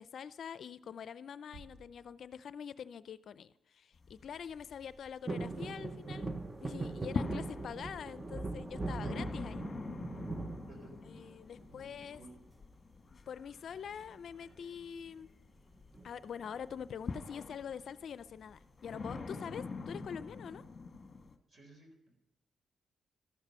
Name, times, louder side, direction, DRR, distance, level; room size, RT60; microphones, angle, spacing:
voice 1, 0.0-6.3 6.6-9.7 11.1-12.2 13.1-15.3 16.0-20.6, left 7 dB, 65° left, 15 dB, 0.4 m, -45 dB
sound 1, 1.5-2.9, right 2 dB, 55° right, 1.5 m, -58 dB
sound 2, 3.9-6.1 6.4-21.4, left 4 dB, 35° left, 1.3 m, -45 dB
sound 3, 5.3-11.4 11.9-12.5 13.8-14.2 14.4-14.5 14.8-15.1 15.9-16.9 17.3-17.4, right 3 dB, 20° right, 0.8 m, -41 dB
voice 2, 10.6-12.4 21.5-22.1, right 2 dB, 40° right, 4 dB, 3.9 m, -57 dB
13.5 x 11.5 x 5.4 m, 0.92 s
cardioid pair, 100°, 0 cm